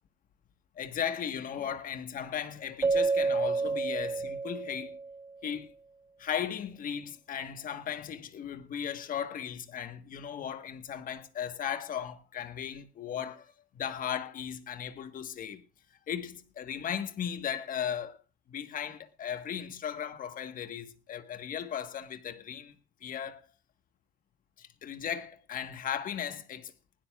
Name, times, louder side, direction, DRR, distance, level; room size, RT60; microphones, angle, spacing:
voice 1, 0.8-5.0 5.4-5.7 6.2-15.7 16.1-18.2 18.5-22.7 23.0-23.5 24.6-26.7, left 8 dB, 55° left, 1.4 m, -36 dB
Keyboard (musical), 2.8-5.3, right 4 dB, 20° right, 0.8 m, -29 dB
19.5 x 17.0 x 2.4 m
cardioid pair, 110°, 17 cm